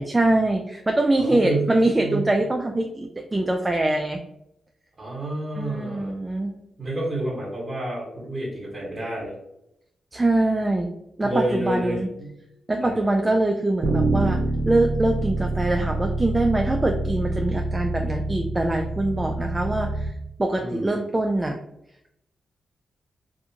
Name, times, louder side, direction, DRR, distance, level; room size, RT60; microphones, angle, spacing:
voice 1, 0.0-4.2 5.6-6.5 10.1-10.9 11.2-12.1 12.7-14.4 14.7-20.1 20.4-21.6, right 2 dB, 25° right, 3 dB, 0.3 m, -23 dB
voice 2, 1.2-1.7 2.0-2.3 5.0-6.1 6.8-9.3 11.2-12.3 12.8-12.9 20.6-21.0, right 1 dB, 40° right, -5 dB, 1.1 m, -29 dB
Bass guitar, 13.8-20.1, right 2 dB, 75° right, 0.6 m, -26 dB
2.5 x 2.4 x 2.8 m, 0.82 s
supercardioid pair, 50°, 0 cm